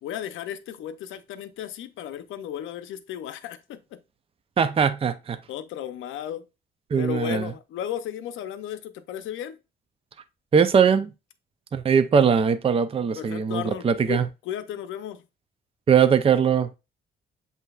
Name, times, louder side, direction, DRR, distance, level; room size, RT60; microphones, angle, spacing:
voice 1, 0.0-4.0 5.5-6.5 7.0-9.6 13.2-15.2, left 10 dB, 80° left, 0.6 m, -34 dB
voice 2, 4.6-5.4 6.9-7.5 10.5-11.1 11.7-14.3 15.9-16.8, right 7 dB, 30° right, 0.4 m, -20 dB
7.7 x 2.7 x 2.3 m
cardioid pair, 90°, 20 cm